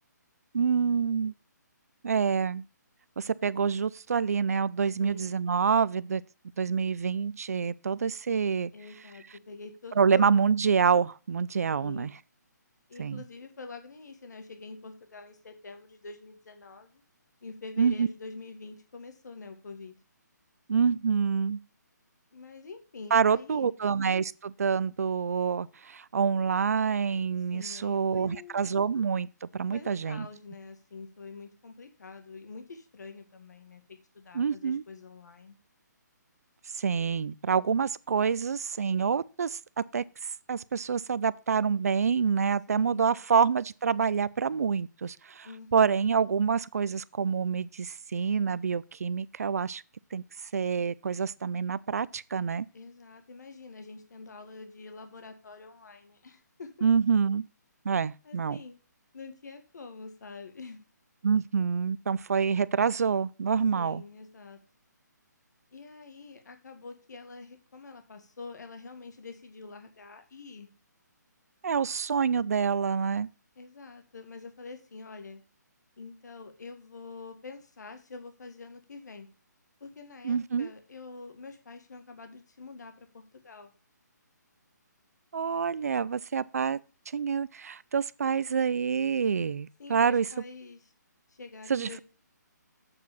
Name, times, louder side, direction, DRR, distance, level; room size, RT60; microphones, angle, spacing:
voice 1, 0.5-1.3 2.0-2.6 3.2-6.2 6.6-8.7 10.0-12.1 13.0-13.2 17.8-18.1 20.7-21.6 23.1-30.3 34.3-34.8 36.8-40.0 40.5-49.8 50.1-50.2 50.5-52.7 56.8-57.4 57.8-58.6 61.2-64.0 71.6-73.3 80.2-80.7 85.3-86.8 87.1-90.3 91.7-92.0, right 6 dB, 55° right, 0.4 m, -27 dB
voice 2, 5.0-5.3 8.7-10.5 11.8-12.1 12.9-17.0 17.4-20.0 22.3-23.8 27.5-28.7 29.7-35.6 42.7-43.2 45.4-46.0 52.7-56.9 58.2-58.8 59.1-60.8 63.7-64.6 65.7-70.7 73.6-75.4 76.0-79.3 79.8-83.7 89.8-90.8 91.3-92.0, left 4 dB, 65° left, 1.8 m, -46 dB
8.0 x 4.8 x 7.0 m
hypercardioid pair, 175°, 10 cm